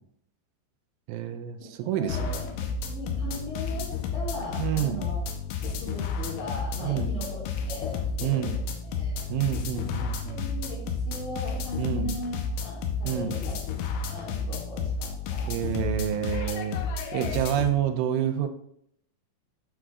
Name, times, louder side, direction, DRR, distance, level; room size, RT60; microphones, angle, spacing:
voice 1, 1.1-2.4 4.6-5.0 6.8-7.1 8.2-8.6 9.3-10.5 11.8-12.2 13.0-13.4 15.5-16.8 17.1-18.5, right 10 dB, 85° right, 6 dB, 3.1 m, -28 dB
voice 2, 1.6-5.3 5.6-9.2 9.7-13.7 14.1-15.7, left 2 dB, 70° left, -6 dB, 4.0 m, -39 dB
sound 1, 2.1-17.7, left 5 dB, 90° left, 3.3 m, -32 dB
8.9 x 6.1 x 2.4 m, 0.71 s
omnidirectional pair, 5.5 m